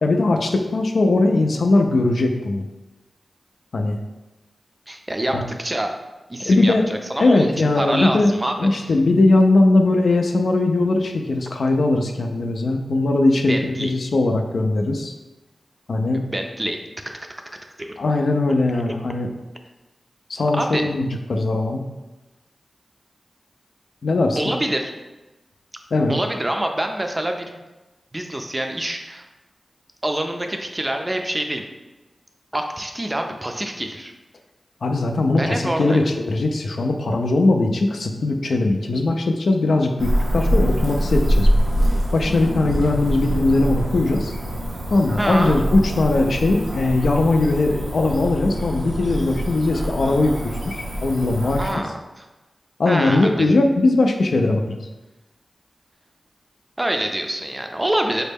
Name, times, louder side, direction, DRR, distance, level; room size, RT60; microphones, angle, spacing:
voice 1, 0.0-2.7 3.7-4.0 5.3-5.4 6.5-6.9 7.2-15.1 15.9-16.2 18.0-19.3 20.3-21.8 24.0-24.5 25.9-26.2 34.8-41.5 42.1-44.3 44.9-51.8 52.8-54.8, left 2 dB, 75° left, 4 dB, 0.4 m, -20 dB
voice 2, 4.9-5.9 6.3-8.9 13.5-13.9 16.1-17.2 17.8-17.9 18.7-18.9 20.5-20.8 24.4-24.9 26.1-27.6 28.1-29.2 30.0-31.6 32.5-34.1 35.4-36.0 45.2-45.6 51.6-51.9 52.2-52.3 52.9-53.5 56.8-58.2, right 1 dB, 25° right, 4 dB, 0.4 m, -26 dB
Cricket / Motor vehicle (road), 40.0-51.7, equal, 85° right, 0.7 m, -24 dB
4.1 x 2.1 x 3.4 m, 1.1 s
cardioid pair, 60°, 0 cm